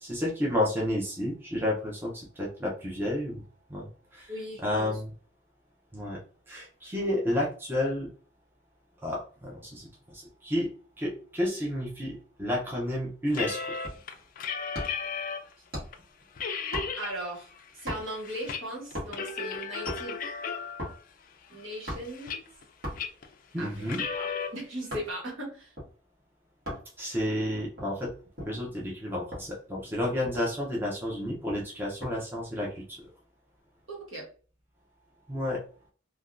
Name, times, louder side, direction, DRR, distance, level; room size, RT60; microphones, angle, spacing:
voice 1, 0.0-3.4 3.7-4.3 4.6-5.1 5.9-6.2 6.5-8.1 9.0-9.9 10.1-10.7 11.0-13.6 23.5-24.0 27.0-28.1 28.5-32.8 35.3-35.6, left 1 dB, 10° right, -4 dB, 0.5 m, -31 dB
voice 2, 4.3-5.0 17.0-17.5 17.7-20.2 21.5-22.4 23.6-25.7 33.9-34.3, right 1 dB, 65° right, -2 dB, 1.2 m, -38 dB
sound 1, 13.3-15.5 15.9-16.0 16.4-17.1 17.5-18.6 18.9-21.0 21.5-22.6 23.0-23.3 23.8-24.5, left 6 dB, 40° left, 0.3 m, -35 dB
sound 2, 13.8-14.2 14.7-15.1 15.7-16.1 16.7-17.2 17.9-18.3 18.9-19.3 19.7-20.1 20.8-21.0 21.9-22.2 22.8-23.2 23.8-25.1 25.8-25.9 26.7-26.9 27.6-28.6 29.3-29.5 29.9-30.0 30.2-30.7 31.5-32.2 32.5-32.8, equal, 50° right, 1.3 m, -39 dB
3.3 x 2.2 x 2.4 m, 0.40 s
head